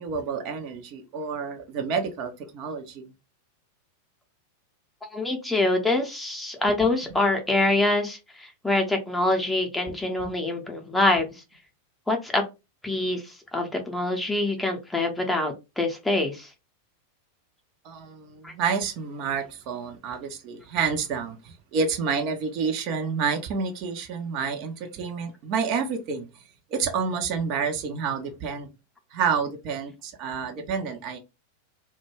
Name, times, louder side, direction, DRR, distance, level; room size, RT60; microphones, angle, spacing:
voice 1, 0.0-3.1 10.2-10.3 17.8-26.3 26.7-28.7 29.1-31.2, right 5 dB, 40° right, 0.5 m, -29 dB
voice 2, 5.1-11.4 12.1-12.4 12.8-16.5 18.4-18.5, left 2 dB, 5° left, 0.7 m, -25 dB
2.2 x 2.2 x 3.2 m
figure-of-eight pair, 90°, 0 cm